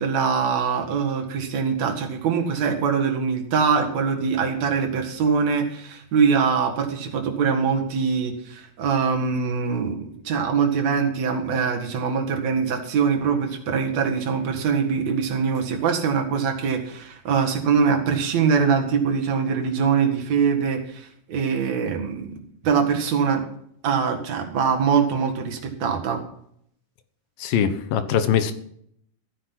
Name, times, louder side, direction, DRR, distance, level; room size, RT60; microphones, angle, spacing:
voice 1, 0.0-23.4 23.8-26.2, right 6 dB, 55° right, 3 dB, 2.9 m, -23 dB
voice 2, 27.4-28.5, left 8 dB, 85° left, 10 dB, 2.9 m, -22 dB
15.0 x 9.8 x 5.9 m, 0.69 s
omnidirectional pair, 4.0 m